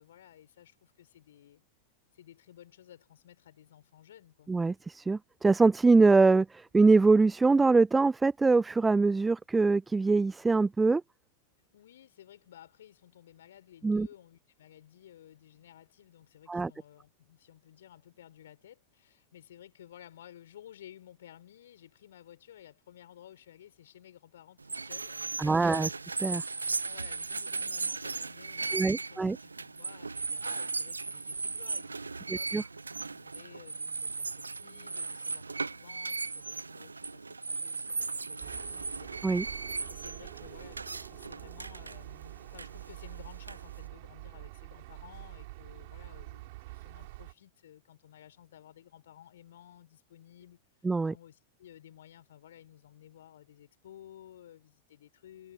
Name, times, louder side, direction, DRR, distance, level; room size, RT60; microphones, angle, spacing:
voice 1, 0.0-1.6 2.1-4.5 11.7-26.0 26.5-39.1 39.4-39.6 39.9-50.6 51.0-55.5, left 11 dB, 60° left, 5.8 m, -55 dB
voice 2, 4.5-11.0 13.8-14.1 16.5-16.7 25.4-25.9 26.2-26.4 28.7-29.4 32.3-32.6 39.2-39.4 50.8-51.1, right 3 dB, 10° right, 0.4 m, -23 dB
sound 1, 24.6-43.9, right 4 dB, 80° right, 0.9 m, -37 dB
sound 2, 38.4-47.3, right 21 dB, 50° right, 7.0 m, -47 dB
figure-of-eight pair, 90°, 0 cm